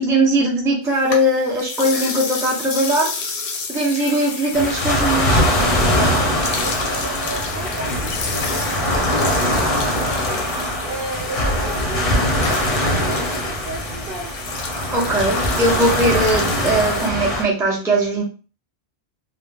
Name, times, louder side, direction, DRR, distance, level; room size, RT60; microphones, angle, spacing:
voice 1, 0.0-3.1 3.7-5.4 14.9-18.2, right 1 dB, 5° right, 0.5 m, -20 dB
sound 1, 0.9-17.1, left 4 dB, 80° left, 0.8 m, -31 dB
sound 2, 4.5-17.4, left 1 dB, 40° left, 0.5 m, -21 dB
voice 2, 5.9-10.5 10.8-14.4, right 3 dB, 60° right, 0.8 m, -34 dB
2.1 x 2.0 x 3.2 m
omnidirectional pair, 1.1 m